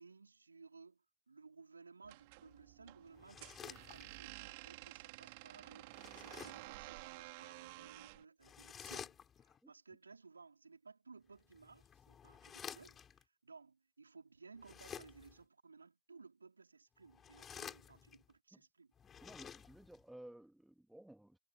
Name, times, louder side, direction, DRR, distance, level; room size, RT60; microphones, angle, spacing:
voice 1, 0.0-18.9, right 4 dB, 75° right, 4.4 m, -59 dB
sound 1, 2.0-8.2, right 26 dB, 50° right, 3.8 m, -52 dB
sound 2, 3.1-4.4 5.9-6.7 8.4-9.6 11.4-13.2 14.6-15.4 17.0-18.3 19.0-20.0, left 8 dB, 20° left, 6.3 m, -52 dB
voice 2, 19.2-21.4, right 1 dB, 5° right, 2.5 m, -56 dB
figure-of-eight pair, 90°, 0 cm